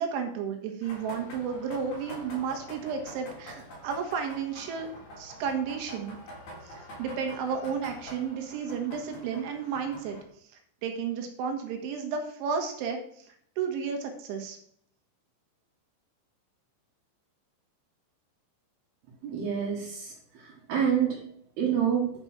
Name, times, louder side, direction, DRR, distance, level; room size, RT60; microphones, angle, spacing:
voice 1, 0.0-4.9 5.2-6.2 6.6-10.2 10.8-14.6, right 6 dB, 80° right, 4 dB, 3.9 m, -32 dB
sound 1, 0.8-10.2, equal, 40° left, 4.9 m, -46 dB
voice 2, 19.2-21.2 21.6-22.1, right 8 dB, 65° right, -3 dB, 3.3 m, -28 dB
11.5 x 5.3 x 5.9 m, 0.66 s
omnidirectional pair, 5.5 m